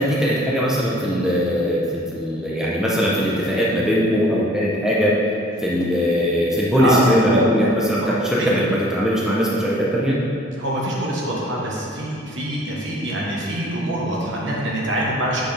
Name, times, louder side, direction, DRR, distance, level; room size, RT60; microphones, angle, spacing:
voice 1, 0.0-5.2 5.6-10.2, equal, 5° right, -6 dB, 0.8 m, -20 dB
voice 2, 10.6-15.4, right 1 dB, 70° right, -4 dB, 1.4 m, -24 dB
8.1 x 6.1 x 3.4 m, 2.6 s
head